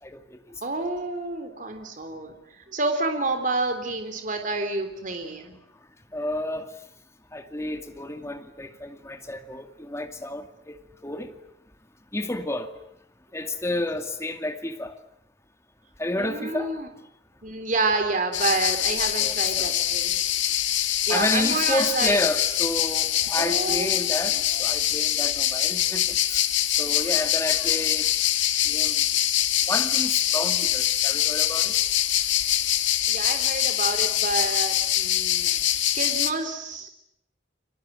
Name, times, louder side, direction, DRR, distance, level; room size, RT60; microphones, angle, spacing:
voice 1, 0.0-0.6 6.1-6.7 7.3-11.3 12.1-12.7 13.3-15.0 16.0-16.7 19.2-19.8 21.1-26.5 26.8-28.1 28.6-29.0 29.7-31.8, left 1 dB, 15° left, 2.2 m, -31 dB
voice 2, 0.6-2.3 2.7-5.6 16.2-16.9 17.4-20.2 21.1-22.2 23.3-23.9 24.5-24.6 33.1-35.5 35.9-36.9, right 3 dB, 45° right, 3.5 m, -28 dB
sound 1, 18.3-36.3, left 12 dB, 90° left, 2.1 m, -24 dB
30.0 x 24.5 x 7.7 m
head